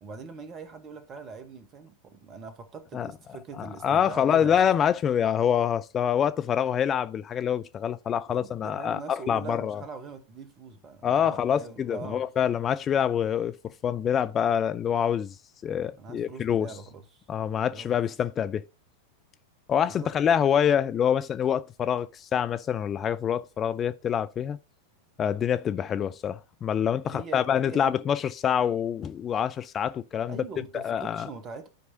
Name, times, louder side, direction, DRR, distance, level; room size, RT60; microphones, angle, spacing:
voice 1, 0.0-4.6 8.3-12.3 16.0-17.3 17.7-17.9 19.8-20.1 27.0-28.0 30.3-31.7, right 5 dB, 30° right, 1.0 m, -42 dB
voice 2, 3.6-9.8 11.0-13.6 13.8-15.3 15.6-16.7 17.3-18.6 19.7-24.6 25.2-30.4 30.7-31.3, left 8 dB, 25° left, 0.4 m, -26 dB
13.0 x 4.6 x 2.6 m
figure-of-eight pair, 90°, 0 cm